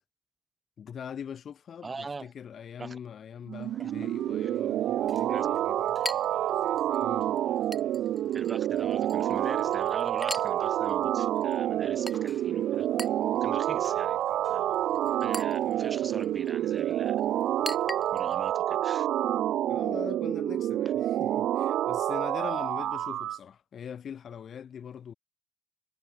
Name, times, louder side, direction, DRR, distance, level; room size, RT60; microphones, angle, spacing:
voice 1, 0.8-6.0 7.0-7.3 19.7-25.1, left 8 dB, 55° left, 0.9 m, -42 dB
voice 2, 1.8-2.3 2.8-3.0 3.8-3.9 4.4-4.5 5.3-5.5 8.3-12.9 13.4-14.8 15.2-17.2 18.1-19.1, right 4 dB, 30° right, 3.3 m, -42 dB
Chink clink, 3.5-18.5, left 1 dB, 10° left, 5.7 m, -45 dB
sound 1, 3.5-23.4, right 12 dB, 75° right, 0.4 m, -28 dB
cardioid pair, 90°, 0 cm